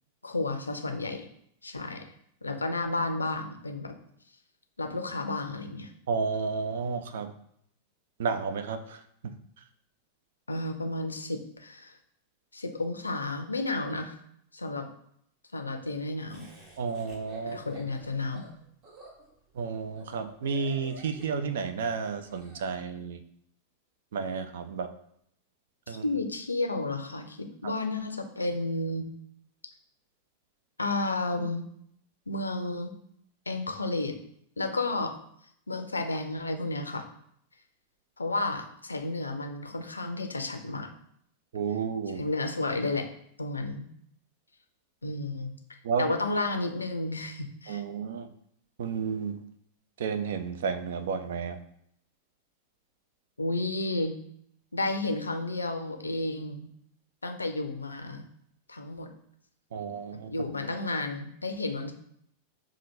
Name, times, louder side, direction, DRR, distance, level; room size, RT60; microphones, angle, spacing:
voice 1, 0.2-1.3 1.6-2.1 2.4-3.9 4.8-5.9 10.5-12.0 12.5-14.2 14.5-14.9 15.5-16.5 17.4-18.5 25.9-29.1 30.8-31.7 32.3-32.9 33.5-34.1 34.6-35.1 35.7-37.1 38.2-40.9 42.2-43.1 43.4-43.9 45.0-45.5 46.0-47.8 53.4-54.2 54.7-56.7 57.2-58.3 58.7-59.1 60.3-61.9, left 2 dB, 80° left, 5 dB, 0.4 m, -32 dB
voice 2, 6.1-7.3 8.2-9.6 16.8-17.6 19.5-23.2 24.1-24.9 25.9-26.0 27.6-27.7 41.5-42.2 45.8-46.2 47.7-48.3 48.8-49.4 50.0-51.6 59.7-60.3, right 5 dB, 60° right, 9 dB, 0.4 m, -32 dB
Laughter, 16.3-22.6, right 1 dB, 35° right, 1.1 m, -51 dB
5.5 x 2.4 x 3.1 m, 0.70 s
figure-of-eight pair, 90°, 0 cm